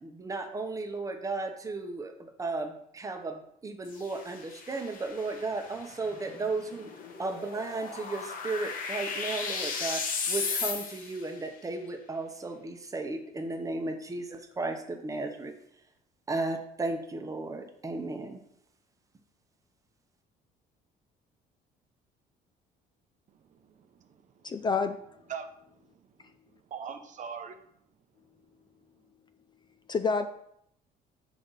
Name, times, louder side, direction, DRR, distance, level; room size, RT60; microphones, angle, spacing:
voice 1, 0.0-6.9 7.2-15.5 16.3-18.4, right 3 dB, 20° right, 0.9 m, -35 dB
sound 1, 3.9-11.3, left 5 dB, 55° left, 1.1 m, -36 dB
voice 2, 23.3-24.6 25.3-27.6, right 7 dB, 50° right, 0.7 m, -43 dB
voice 3, 24.4-25.0 29.9-30.3, left 4 dB, 25° left, 0.4 m, -27 dB
6.5 x 5.1 x 4.1 m
cardioid pair, 110°, 17 cm